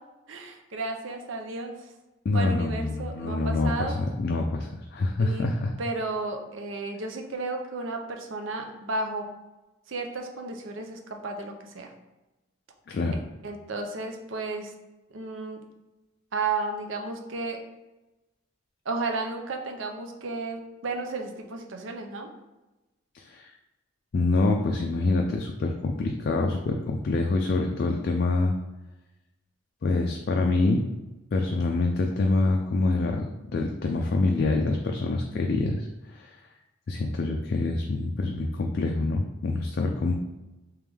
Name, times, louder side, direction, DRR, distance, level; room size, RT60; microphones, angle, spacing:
voice 1, 0.3-1.7 2.3-4.0 5.2-5.5 5.8-9.3 9.9-11.9 13.4-14.7 15.1-15.6 16.3-17.6 18.9-22.3, right 3 dB, 70° right, 3 dB, 0.6 m, -33 dB
voice 2, 2.3-5.7 12.9-13.1 23.1-23.5 24.1-28.5 29.8-30.8 31.3-33.2 33.5-36.4 36.9-40.1, left 3 dB, 50° left, 2 dB, 0.3 m, -26 dB
3.4 x 3.1 x 3.4 m, 1.0 s
head